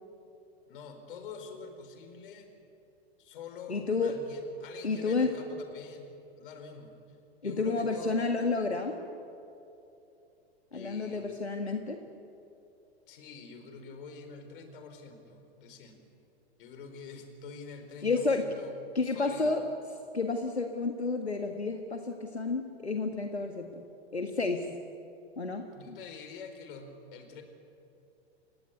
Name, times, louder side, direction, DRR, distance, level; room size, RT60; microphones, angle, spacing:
voice 1, 0.7-2.5 3.2-7.2 7.4-8.3 10.7-11.3 13.1-16.0 16.6-18.7 19.0-19.6 25.7-27.4, left 5 dB, 55° left, 6 dB, 4.4 m, -46 dB
voice 2, 3.7-4.1 4.8-5.3 7.4-9.0 10.7-12.0 18.0-18.4 19.0-19.6 20.1-23.8 24.1-24.7 25.4-26.0, left 3 dB, 85° left, 4 dB, 1.8 m, -30 dB
29.5 x 17.0 x 9.6 m, 2.7 s
figure-of-eight pair, 100°, 32 cm